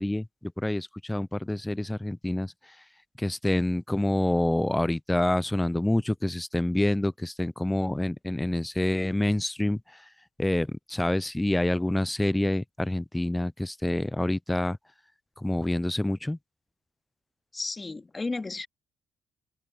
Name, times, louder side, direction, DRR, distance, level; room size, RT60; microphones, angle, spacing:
voice 1, 0.0-2.5 3.2-10.0 10.4-14.8 15.4-16.4, left 1 dB, 10° left, 0.6 m, -27 dB
voice 2, 17.5-18.7, left 3 dB, 25° left, 2.6 m, -33 dB
open air
supercardioid pair, 70°, 0 cm